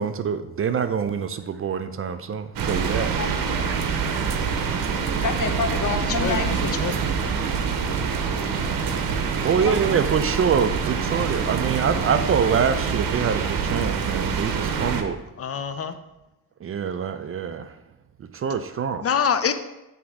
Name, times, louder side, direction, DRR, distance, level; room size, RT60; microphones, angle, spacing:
voice 1, 0.0-3.1 3.7-4.1 5.1-5.2 8.6-15.2 16.6-17.7 18.3-19.1, right 7 dB, 40° right, 0.4 m, -25 dB
sound 1, 2.6-15.0, right 6 dB, 90° right, 0.8 m, -25 dB
voice 2, 2.9-3.8 4.2-4.3 4.7-4.9 5.2-7.1 7.6-7.7 8.0-8.1 8.6-8.7 9.6-9.8, left 4 dB, 60° left, 0.9 m, -30 dB
voice 3, 6.8-7.3 15.4-15.9 19.0-19.5, left 7 dB, 45° left, 0.6 m, -25 dB
8.0 x 3.6 x 4.8 m
cardioid pair, 115°, 34 cm